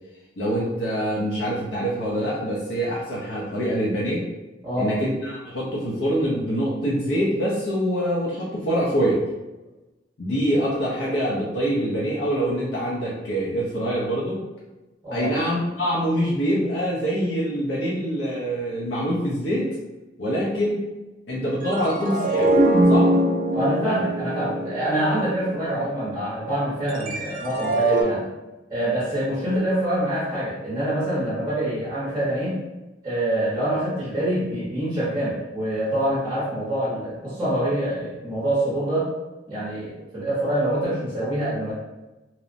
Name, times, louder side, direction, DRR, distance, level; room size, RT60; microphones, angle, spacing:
voice 1, 0.4-4.2 4.8-9.2 10.2-14.4 15.1-19.7 20.2-20.8 21.3-22.6 22.9-23.1, equal, 75° left, -7 dB, 0.6 m, -25 dB
voice 2, 4.6-4.9 15.0-15.3 23.5-28.2 28.7-32.6 33.0-39.1 39.5-41.7, right 1 dB, 20° right, -9 dB, 0.7 m, -25 dB
sound 1, 21.6-25.9 26.9-28.0, right 1 dB, 45° right, 0.3 m, -22 dB
2.8 x 2.0 x 2.5 m, 1.1 s
head